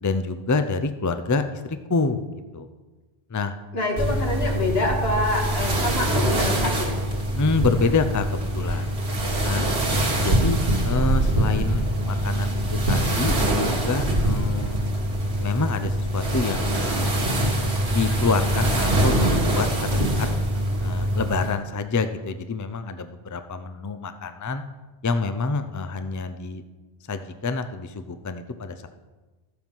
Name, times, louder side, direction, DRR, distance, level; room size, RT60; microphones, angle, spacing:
voice 1, 0.0-2.2 2.5-2.7 3.3-3.6 7.3-9.0 9.4-9.7 10.2-10.6 10.8-14.9 15.4-17.2 17.9-20.3 20.8-24.6 25.0-26.6 27.1-28.9, left 4 dB, 25° left, 9 dB, 0.5 m, -27 dB
voice 2, 3.7-7.0, left 2 dB, 75° left, 1 dB, 2.1 m, -26 dB
sound 1, 4.0-21.5, right 1 dB, 90° right, 2.1 m, -23 dB
13.5 x 7.6 x 5.5 m, 1.2 s
omnidirectional pair, 1.0 m